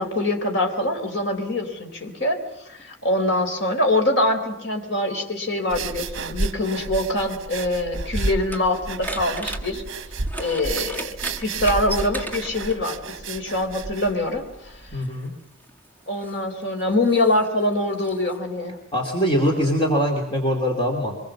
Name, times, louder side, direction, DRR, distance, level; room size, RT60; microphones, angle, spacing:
voice 1, 0.0-9.8 10.4-11.1 11.4-13.0 13.3-15.0 16.1-18.8, left 1 dB, 60° left, 3 dB, 3.9 m, -24 dB
sound 1, 5.7-15.0, right 3 dB, 65° right, 1.0 m, -31 dB
sound 2, 7.7-13.0 14.1-14.3 15.0-18.4, right 2 dB, 10° left, 1.6 m, -37 dB
voice 2, 14.9-15.3 18.9-21.2, equal, 25° left, 0 dB, 2.9 m, -22 dB
24.5 x 21.0 x 7.3 m, 0.87 s
head